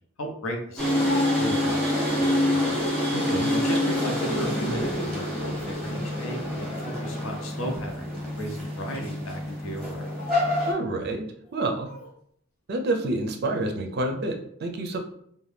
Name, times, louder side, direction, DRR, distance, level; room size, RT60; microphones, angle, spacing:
voice 1, 0.2-2.8 3.5-10.1, equal, 75° left, 3 dB, 0.6 m, -36 dB
Speech, 0.7-2.4 2.9-3.5 3.9-5.1 5.4-5.6 6.4-7.4 7.9-8.1 8.8-9.1 9.9-10.6 11.4-12.1, left 1 dB, 40° left, 0.8 m, -41 dB
sound 1, 0.8-10.7, left 1 dB, ahead, 0.9 m, -26 dB
voice 2, 3.1-3.5 10.7-11.2 11.5-11.9 12.7-15.0, right 2 dB, 50° right, 4 dB, 0.4 m, -28 dB
2.7 x 2.2 x 3.3 m, 0.68 s
head